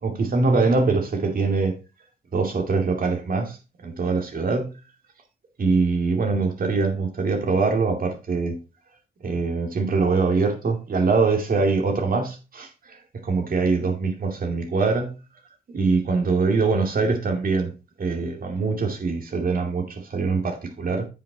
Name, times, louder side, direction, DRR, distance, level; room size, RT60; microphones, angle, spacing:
voice 1, 0.0-1.7 2.3-3.6 3.8-4.7 5.6-8.6 9.2-15.1 15.7-17.7 18.0-21.1, right 4 dB, 50° right, 2.6 m, -23 dB
9.0 x 5.9 x 4.1 m
cardioid pair, 75°, 19 cm